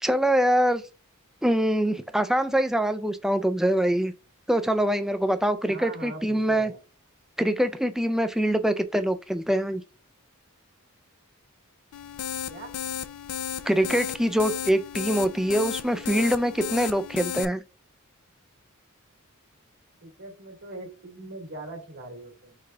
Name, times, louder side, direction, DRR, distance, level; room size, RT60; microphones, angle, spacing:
voice 1, 0.0-0.8 1.4-4.1 4.5-6.7 7.4-9.8 13.6-17.6, equal, ahead, 0.3 m, -24 dB
voice 2, 5.6-6.8 12.5-12.7 20.0-22.6, right 2 dB, 60° right, 1.6 m, -41 dB
sound 1, 11.9-17.4, left 9 dB, 80° left, 0.3 m, -34 dB
4.9 x 3.7 x 2.2 m
head